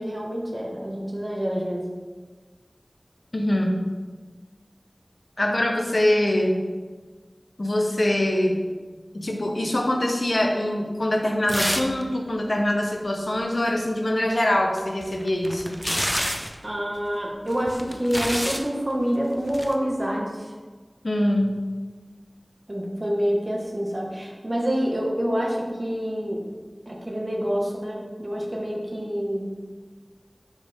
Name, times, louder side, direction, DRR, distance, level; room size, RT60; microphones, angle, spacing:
voice 1, 0.0-1.8 5.4-5.5 16.6-20.4 22.7-26.4 26.9-29.5, equal, 40° right, -1 dB, 1.5 m, -27 dB
voice 2, 3.3-3.9 5.4-6.6 7.6-8.6 9.1-15.8 21.0-21.6, left 1 dB, 70° left, 2 dB, 1.0 m, -23 dB
sound 1, 11.5-12.0 12.3-12.4 14.8-16.6 17.5-18.7 19.5-19.7, equal, 5° left, 0.7 m, -28 dB
7.9 x 4.9 x 3.7 m, 1.4 s
wide cardioid pair, 45°, 0 cm